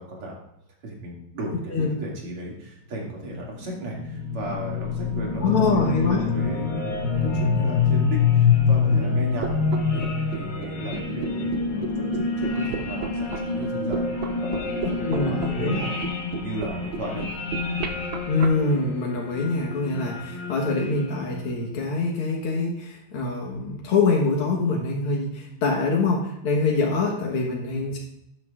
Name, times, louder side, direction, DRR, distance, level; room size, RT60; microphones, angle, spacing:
voice 1, 0.8-5.4 5.7-9.6 9.9-10.0 10.3-16.0 16.3-17.3, right 1 dB, 90° right, -2 dB, 3.2 m, -35 dB
sound 1, 3.2-21.6, left 5 dB, 55° left, 2.1 m, -26 dB
voice 2, 5.4-6.3 15.0-15.8 18.3-28.0, left 3 dB, 85° left, -1 dB, 2.2 m, -24 dB
sound 2, 9.4-18.5, right 5 dB, 65° right, 1.6 m, -33 dB
11.5 x 9.3 x 2.4 m, 0.82 s
omnidirectional pair, 2.4 m